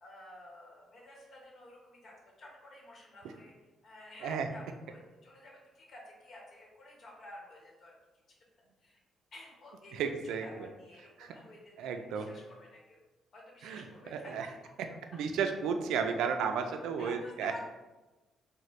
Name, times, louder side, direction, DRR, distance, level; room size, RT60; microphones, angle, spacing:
voice 1, 0.0-3.5 3.8-7.9 8.8-9.0 9.3-9.9 10.2-11.9 12.1-13.0 13.3-14.5 17.0-17.6, left 1 dB, 50° left, -2 dB, 1.0 m, -51 dB
voice 2, 9.9-10.7 11.2-11.3 11.8-12.3 13.6-14.5 14.8-14.9 15.1-17.5, right 6 dB, 85° right, 6 dB, 0.3 m, -33 dB
4.0 x 2.1 x 3.1 m, 1.1 s
cardioid pair, 90°, 0 cm